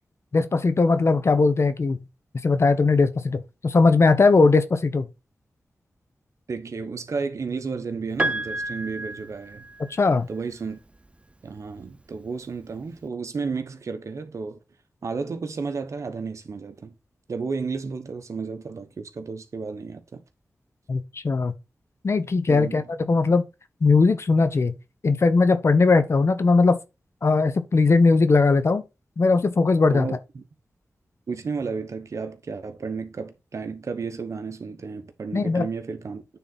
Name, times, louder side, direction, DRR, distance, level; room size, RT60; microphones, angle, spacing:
voice 1, 0.3-2.0 2.4-5.0 9.9-10.3 20.9-21.5 22.0-23.4 23.8-24.7 25.0-26.8 27.2-28.8 29.2-30.1 35.3-35.6, left 3 dB, 55° left, 0.9 m, -19 dB
voice 2, 6.5-9.7 10.3-10.8 11.4-14.6 15.0-16.9 17.3-20.2 22.5-22.9 29.9-30.4 31.3-36.2, right 4 dB, 70° right, 1.1 m, -32 dB
Piano, 8.2-10.2 11.5-11.6, right 1 dB, 20° right, 0.6 m, -30 dB
9.1 x 3.9 x 4.2 m
cardioid pair, 55°, 5 cm